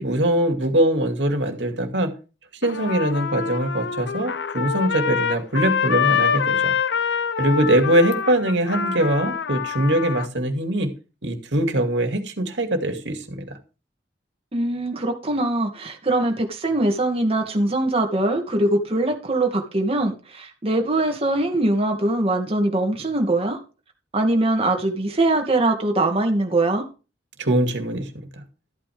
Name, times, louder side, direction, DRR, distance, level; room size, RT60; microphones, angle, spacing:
voice 1, 0.0-2.1 2.6-6.7 7.4-10.9 11.2-13.4 27.4-28.1, right 1 dB, 75° right, 2.4 m, -22 dB
Trumpet, 2.6-10.3, left 7 dB, 70° left, 0.7 m, -25 dB
voice 2, 14.5-23.6 24.1-26.9, right 2 dB, 35° right, 2.4 m, -22 dB
13.5 x 9.0 x 3.5 m
head